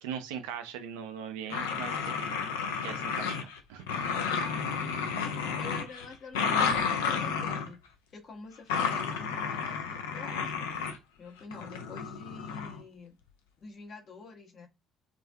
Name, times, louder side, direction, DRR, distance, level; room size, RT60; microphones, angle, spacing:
voice 1, 0.0-2.4 2.8-3.9 5.1-5.2, right 8 dB, 70° right, 0.4 m, -40 dB
voice 2, 1.4-1.8 4.4-4.7 5.6-7.8 8.1-10.7 11.2-13.2 13.6-14.7, left 3 dB, 45° left, 0.8 m, -47 dB
sound 1, 1.5-3.6 3.9-7.7 8.7-11.0 11.5-12.8, left 6 dB, 70° left, 0.3 m, -31 dB
2.4 x 2.3 x 2.3 m
figure-of-eight pair, 50°, 0 cm